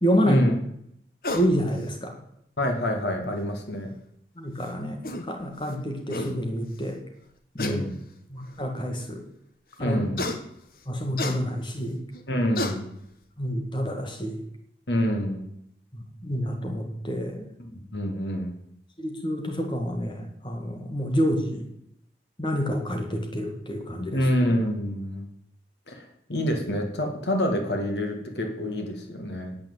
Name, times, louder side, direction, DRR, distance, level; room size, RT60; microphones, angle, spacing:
voice 1, 0.0-0.4 1.3-2.2 4.4-5.0 5.3-7.0 7.5-7.8 8.3-9.2 9.8-10.0 10.9-12.0 13.4-14.4 16.2-17.5 19.0-21.7 22.4-24.3, equal, 25° left, 3 dB, 2.1 m, -28 dB
sound 1, 1.2-1.5 3.0-3.1 4.6-4.7 5.0-5.3 5.8-5.9 6.1-6.3 7.6-7.8 8.6-8.7 10.2-10.4 11.2-11.4 12.1-12.2 12.6-12.8, left 2 dB, 55° left, 1.3 m, -30 dB
voice 2, 2.6-3.9 7.6-7.9 9.8-10.2 12.3-13.0 14.9-15.5 17.6-18.6 24.1-25.3 25.9-26.0 26.3-29.6, equal, 80° left, 3 dB, 2.3 m, -27 dB
8.9 x 8.4 x 8.1 m, 0.74 s
head